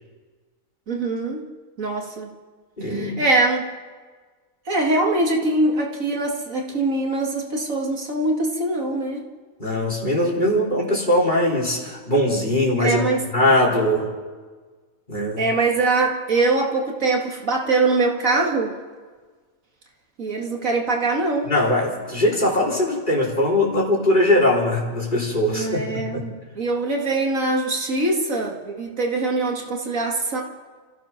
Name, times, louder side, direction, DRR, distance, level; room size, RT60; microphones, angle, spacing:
voice 1, 0.9-1.5 1.8-2.3 2.9-3.6 4.7-9.2 12.8-13.3 15.4-18.7 20.2-21.5 25.5-30.4, right 2 dB, 70° right, 0 dB, 2.6 m, -23 dB
voice 2, 2.8-3.2 9.6-13.0 13.3-14.1 15.1-15.4 21.5-26.2, left 1 dB, 35° left, -1 dB, 4.1 m, -21 dB
29.5 x 14.5 x 5.9 m, 1.4 s
omnidirectional pair, 1.5 m